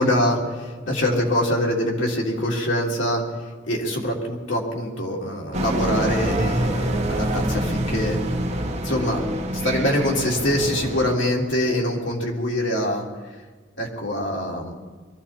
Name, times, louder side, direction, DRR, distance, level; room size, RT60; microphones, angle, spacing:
voice 1, 0.0-3.2 3.6-8.2 8.8-9.2 9.5-13.0 13.8-14.7, left 1 dB, 75° left, -1 dB, 3.0 m, -24 dB
sound 1, 5.5-11.1, right 1 dB, 35° right, 1.5 m, -26 dB
22.5 x 14.0 x 4.3 m, 1.4 s
head